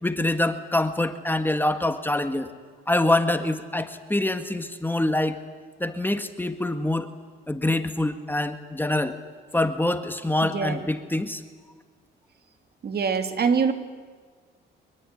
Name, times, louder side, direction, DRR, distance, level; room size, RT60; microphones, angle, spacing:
voice 1, 0.0-2.5 2.9-5.4 5.8-7.1 7.5-9.2 9.5-11.4, left 1 dB, 10° left, 8 dB, 1.8 m, -25 dB
voice 2, 10.4-10.9 12.8-13.7, right 6 dB, 55° right, 8 dB, 2.5 m, -24 dB
24.0 x 22.5 x 9.9 m, 1.6 s
cardioid pair, 90°, 20 cm